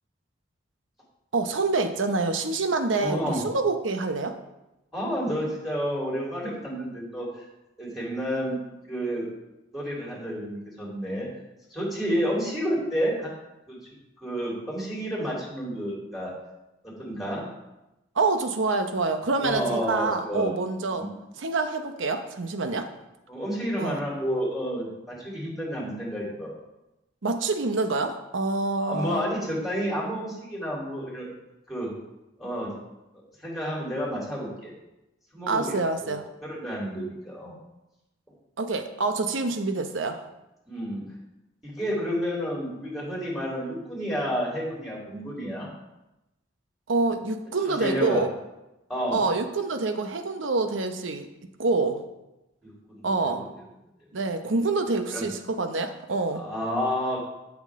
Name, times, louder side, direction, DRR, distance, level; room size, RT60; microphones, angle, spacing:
voice 1, 1.3-4.4 18.2-21.1 21.4-22.9 23.8-24.0 27.2-29.2 35.5-36.3 38.6-40.2 46.9-48.3 49.1-51.3 51.6-52.0 53.0-53.5 54.1-56.4, right 3 dB, 85° right, 7 dB, 0.8 m, -26 dB
voice 2, 2.9-3.4 4.9-7.5 7.8-8.6 8.9-9.3 9.7-11.3 11.7-13.3 13.7-13.8 14.2-16.3 16.8-17.5 19.4-20.5 21.0-21.1 23.3-26.5 28.8-31.3 31.7-31.9 32.4-32.7 33.4-34.7 35.3-35.8 36.0-36.1 36.4-37.6 40.7-41.0 41.6-45.7 47.7-48.2 48.9-49.3 52.6-53.4 55.1-55.2 56.3-57.2, equal, ahead, -5 dB, 3.5 m, -30 dB
12.0 x 6.2 x 3.7 m, 0.95 s
head